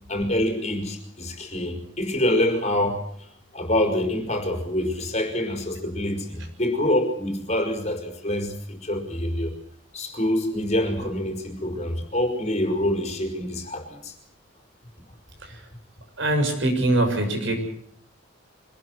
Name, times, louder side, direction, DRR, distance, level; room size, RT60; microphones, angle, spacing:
voice 1, 0.1-9.5 9.9-14.1, left 1 dB, 35° left, 4 dB, 4.7 m, -26 dB
voice 2, 16.2-17.6, right 1 dB, 65° right, 4 dB, 6.9 m, -23 dB
25.0 x 19.5 x 7.9 m, 0.66 s
head